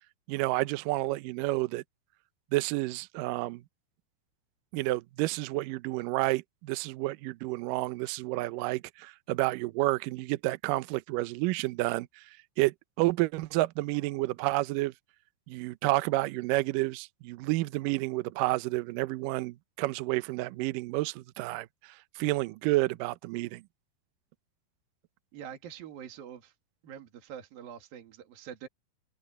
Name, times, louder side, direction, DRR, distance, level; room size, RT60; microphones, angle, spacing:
voice 1, 0.3-1.8 2.5-3.6 4.7-12.2 12.6-14.9 15.5-23.6, right 19 dB, 80° right, 2.0 m, -30 dB
voice 2, 25.3-26.5 26.8-28.7, right 9 dB, 65° right, 4.0 m, -45 dB
open air
omnidirectional pair, 4.7 m